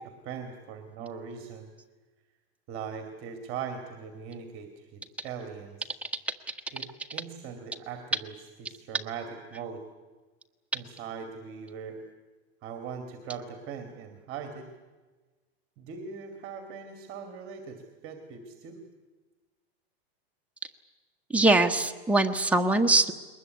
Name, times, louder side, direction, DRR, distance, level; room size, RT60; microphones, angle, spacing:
voice 1, 0.0-1.7 2.7-6.0 6.7-9.8 10.7-12.0 12.6-14.7 15.8-18.8, right 6 dB, 45° right, 7 dB, 2.6 m, -40 dB
voice 2, 21.3-23.1, right 2 dB, 5° right, 4 dB, 1.2 m, -22 dB
21.5 x 20.5 x 9.5 m, 1.3 s
supercardioid pair, 140°, 32 cm